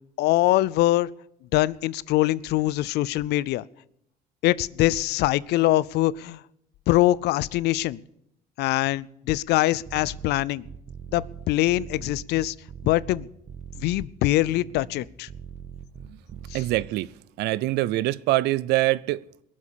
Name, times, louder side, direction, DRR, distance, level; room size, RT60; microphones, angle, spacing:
voice 1, 0.2-1.1 1.5-3.6 4.4-6.4 6.9-8.0 8.6-10.6 11.1-12.5 12.8-13.3 13.8-15.3 16.5-16.6, left 16 dB, 80° left, 0.5 m, -23 dB
sound 1, 9.9-16.9, right 8 dB, 40° right, 1.2 m, -41 dB
voice 2, 16.5-17.1 17.4-19.4, right 17 dB, 80° right, 0.5 m, -24 dB
21.5 x 7.5 x 6.8 m
cardioid pair, 110°, 17 cm